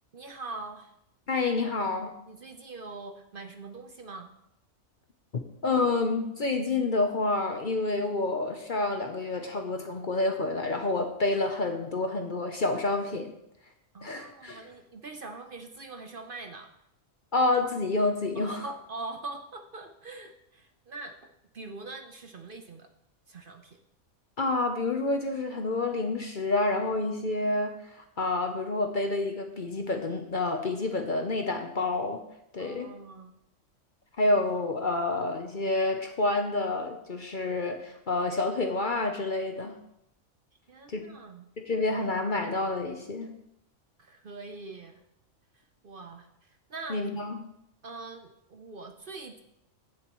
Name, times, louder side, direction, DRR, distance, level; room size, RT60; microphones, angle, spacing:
voice 1, 0.1-0.9 2.3-4.3 13.9-16.7 18.3-22.9 23.3-23.8 32.6-33.4 40.7-41.4 44.0-45.0 45.5-47.0 47.8-49.4, right 3 dB, 50° right, 5 dB, 0.8 m, -43 dB
voice 2, 1.3-2.1 5.3-13.3 14.0-14.6 17.3-18.6 24.4-32.2 32.5-32.9 34.2-39.8 40.9-41.0 41.6-43.3 46.9-47.4, left 2 dB, 45° left, 5 dB, 0.8 m, -28 dB
15.5 x 7.3 x 3.1 m, 0.81 s
omnidirectional pair, 1.4 m